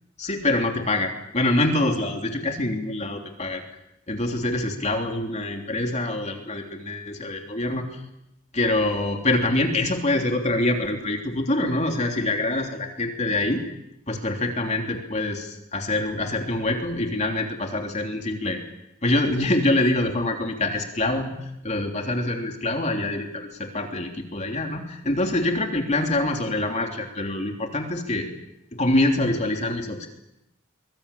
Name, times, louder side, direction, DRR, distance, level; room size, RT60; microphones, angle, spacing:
voice 1, 0.2-3.6 4.1-8.0 8.5-13.6 14.1-18.6 19.0-28.3 28.7-30.1, left 2 dB, 35° left, 3 dB, 3.2 m, -25 dB
24.5 x 21.5 x 8.5 m, 0.85 s
head